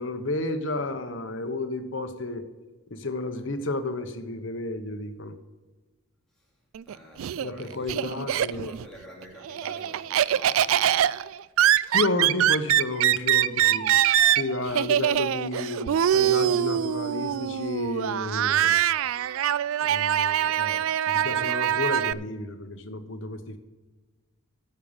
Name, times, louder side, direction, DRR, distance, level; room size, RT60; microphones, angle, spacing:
voice 1, 0.0-2.4 2.9-5.3 7.4-8.7 11.9-13.9 14.3-18.8 19.8-23.6, left 2 dB, 65° left, 8 dB, 1.0 m, -32 dB
Laughter, 6.7-8.9 9.2-22.1, right 11 dB, 80° right, 0.3 m, -23 dB
voice 2, 6.9-11.1 14.6-14.8, equal, ahead, -5 dB, 2.9 m, -48 dB
10.0 x 6.7 x 7.2 m, 1.3 s
head